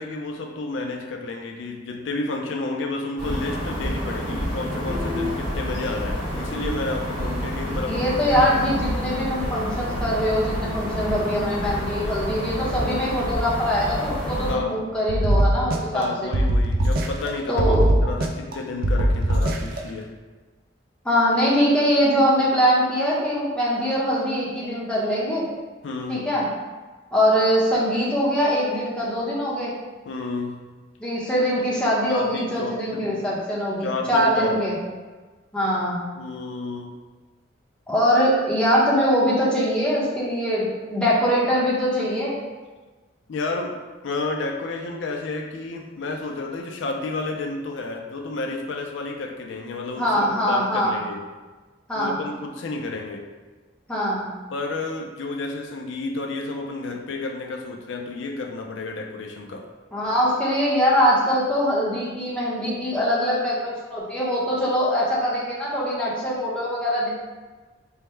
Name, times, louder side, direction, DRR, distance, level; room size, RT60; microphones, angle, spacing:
voice 1, 0.0-8.2 8.7-8.8 14.5-14.8 15.9-17.7 18.0-20.1 25.8-26.3 30.1-30.7 32.1-33.2 33.8-34.7 36.2-36.9 43.3-43.7 44.0-51.2 51.9-53.2 54.5-59.7, left 3 dB, 75° left, 2 dB, 0.4 m, -31 dB
sound 1, 3.2-14.5, equal, 70° right, 1.4 m, -28 dB
voice 2, 7.9-16.3 17.5-17.9 21.0-25.5 26.1-26.5 27.1-29.7 31.0-34.7 35.5-36.0 37.9-42.3 50.0-51.0 51.9-52.2 53.9-54.3 59.9-67.1, equal, 5° left, -7 dB, 0.8 m, -22 dB
sound 2, 15.1-16.0 16.3-17.3 17.6-18.5 18.8-19.8, right 1 dB, 50° right, 0.4 m, -20 dB
3.4 x 2.1 x 4.3 m, 1.3 s
head